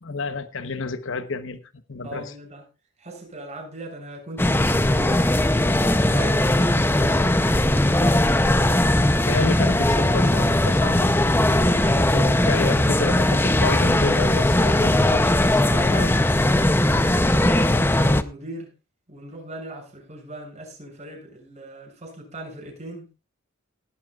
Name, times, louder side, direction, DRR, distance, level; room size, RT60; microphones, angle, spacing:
voice 1, 0.0-1.6 1.9-2.3 9.3-11.1 12.1-16.3, left 3 dB, 65° left, 1.0 m, -30 dB
voice 2, 2.0-2.6 3.0-8.2 11.5-13.2 16.8-18.7 19.1-23.1, right 1 dB, 35° right, 7.0 m, -39 dB
sound 1, 4.4-18.2, left 1 dB, 10° left, 0.6 m, -19 dB
18.5 x 12.0 x 2.4 m
head